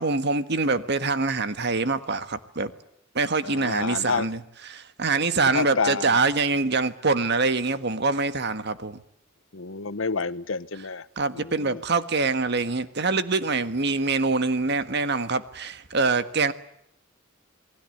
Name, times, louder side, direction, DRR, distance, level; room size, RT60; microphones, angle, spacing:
voice 1, 0.0-2.7 3.1-4.4 4.7-9.0 11.2-16.5, right 3 dB, 60° right, 1.6 m, -24 dB
voice 2, 3.4-4.3 5.4-6.2 9.5-11.1 11.3-11.8, left 4 dB, 80° left, 1.1 m, -29 dB
28.5 x 20.5 x 8.0 m
head